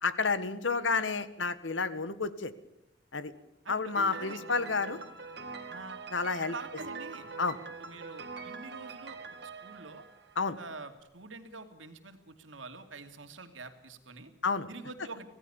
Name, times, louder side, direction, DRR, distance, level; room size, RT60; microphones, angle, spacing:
voice 1, 0.0-2.5 3.1-3.3 3.7-5.0 5.3-5.7 6.1-6.5 7.4-7.6 10.3-10.6 14.4-14.7, left 4 dB, 75° left, 13 dB, 1.6 m, -30 dB
voice 2, 3.6-4.4 5.7-6.0 6.5-7.3 7.8-9.2 9.4-10.0 10.6-14.3 14.7-15.3, right 3 dB, 85° right, 7 dB, 2.7 m, -46 dB
Piano, 4.0-10.8, right 4 dB, 60° right, 2.3 m, -44 dB
26.0 x 17.0 x 7.1 m, 0.86 s
head